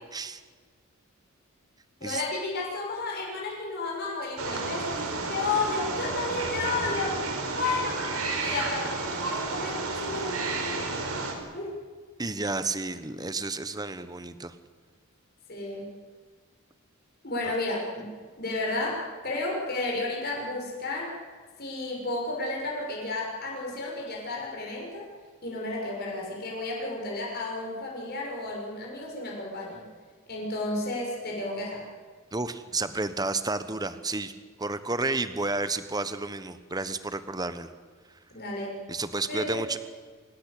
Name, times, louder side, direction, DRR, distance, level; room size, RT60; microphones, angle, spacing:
voice 1, 2.0-7.2 7.6-8.1 8.4-10.8 11.5-11.8 15.5-15.9 17.2-18.1 18.4-21.2 21.6-25.1 25.4-29.8 30.3-31.9 38.3-38.8 39.2-39.6, left 2 dB, 45° left, -2 dB, 6.3 m, -32 dB
Wild animals, 4.4-11.3, right 3 dB, 75° right, 4.7 m, -31 dB
voice 2, 12.2-14.5 32.3-34.3 34.6-37.7 38.9-39.8, right 3 dB, 20° right, 12 dB, 1.2 m, -31 dB
26.5 x 17.0 x 8.5 m, 1.5 s
head